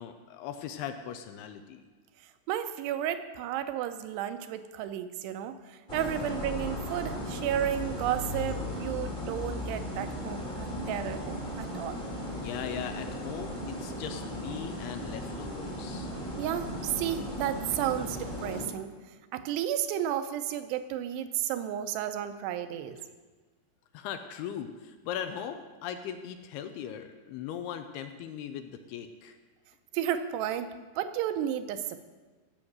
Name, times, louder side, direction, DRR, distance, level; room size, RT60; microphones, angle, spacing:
voice 1, 0.0-1.8 12.4-16.1 23.9-29.4, left 9 dB, 85° left, 8 dB, 2.5 m, -39 dB
voice 2, 2.5-12.0 16.4-18.9 19.3-23.0 29.9-32.0, right 10 dB, 80° right, 10 dB, 2.8 m, -32 dB
sound 1, 5.9-18.7, equal, 25° left, 1.1 m, -36 dB
15.5 x 6.3 x 8.0 m, 1.3 s
omnidirectional pair, 5.0 m